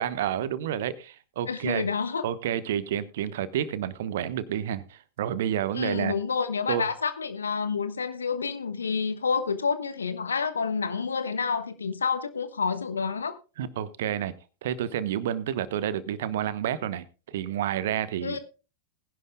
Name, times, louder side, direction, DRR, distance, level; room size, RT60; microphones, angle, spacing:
voice 1, 0.0-1.8 2.2-6.1 6.7-6.9 13.6-14.3 14.6-18.4, right 10 dB, 55° right, 1.0 m, -29 dB
voice 2, 1.5-2.3 5.7-13.4 18.2-18.4, left 5 dB, 75° left, 1.3 m, -29 dB
20.0 x 11.0 x 2.2 m
figure-of-eight pair, 90°, 0 cm